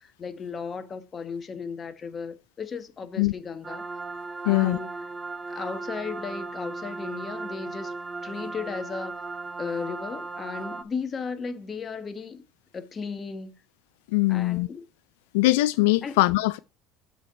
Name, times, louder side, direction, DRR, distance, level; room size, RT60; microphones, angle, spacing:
voice 1, 0.0-3.8 4.4-4.9 5.5-7.9 8.2-9.2 9.6-12.4 12.7-13.5 14.3-14.8 16.0-16.2, left 5 dB, 30° left, 1.2 m, -35 dB
sound 1, 3.6-10.8, right 3 dB, 20° right, 0.8 m, -36 dB
voice 2, 4.4-4.8 14.1-14.7 15.3-16.6, left 19 dB, 80° left, 0.3 m, -21 dB
7.5 x 4.6 x 5.4 m
supercardioid pair, 100°, 0 cm